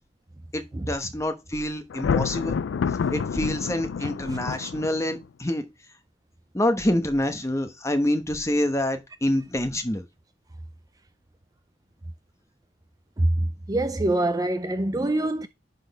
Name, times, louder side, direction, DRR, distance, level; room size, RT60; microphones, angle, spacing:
voice 1, 0.5-2.6 3.1-5.6 6.5-10.0, left 1 dB, 15° left, 1.0 m, -26 dB
Thunder, 1.9-5.2, left 6 dB, 85° left, 0.4 m, -28 dB
voice 2, 4.0-4.4 13.2-15.5, right 1 dB, 20° right, 0.5 m, -25 dB
11.0 x 4.1 x 4.1 m
head